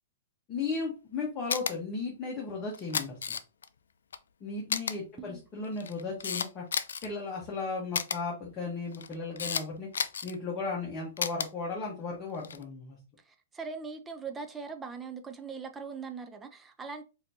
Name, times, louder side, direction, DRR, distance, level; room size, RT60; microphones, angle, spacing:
voice 1, 0.5-3.4 4.4-6.6 7.0-13.0, left 4 dB, 25° left, 1.1 m, -36 dB
Camera, 1.5-1.7 2.7-3.7 4.1-4.2 4.7-4.9 5.6-7.1 7.9-8.2 8.9-9.6 9.9-10.3 11.2-11.5 12.3-12.6, left 6 dB, 90° left, 0.3 m, -31 dB
voice 2, 13.2-17.0, right 5 dB, 15° right, 0.4 m, -41 dB
4.2 x 2.7 x 2.7 m
hypercardioid pair, 140°, 0 cm